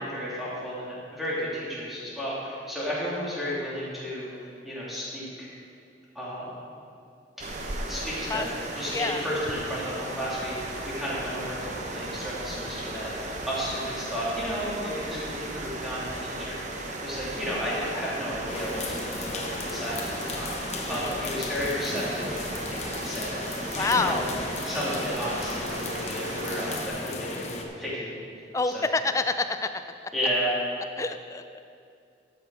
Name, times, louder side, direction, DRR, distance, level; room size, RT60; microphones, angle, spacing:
voice 1, 0.0-5.5 6.1-6.5 7.4-7.5 7.8-23.3 23.7-24.2 24.6-28.1 28.7-28.9 30.1-30.6, equal, ahead, -9 dB, 2.7 m, -33 dB
sound 1, 7.4-26.9, right 2 dB, 40° right, 0.9 m, -36 dB
voice 2, 8.9-9.2 20.9-21.2 23.8-24.2 28.5-29.7 31.0-31.6, left 3 dB, 15° left, 9 dB, 0.4 m, -27 dB
sound 2, 10.3-25.9, right 1 dB, 80° right, 1.4 m, -46 dB
sound 3, 18.5-27.6, left 3 dB, 40° left, 0.8 m, -36 dB
13.0 x 6.6 x 4.8 m, 2.4 s
head